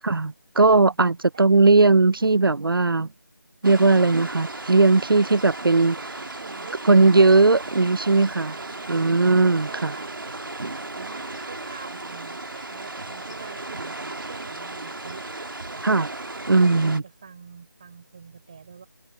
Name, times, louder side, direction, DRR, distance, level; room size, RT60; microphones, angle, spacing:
voice 1, 0.0-3.1 3.6-6.0 6.9-8.6 8.9-9.9 15.8-16.1 16.5-17.0, right 3 dB, 90° right, 0.7 m, -18 dB
voice 2, 0.6-1.0 1.3-1.5 6.1-6.8 8.4-9.2 9.6-10.1 10.9-15.2 16.5-18.9, right 6 dB, 15° right, 4.6 m, -45 dB
sound 1, 3.6-17.0, right 2 dB, 70° right, 2.0 m, -35 dB
figure-of-eight pair, 180°, 11 cm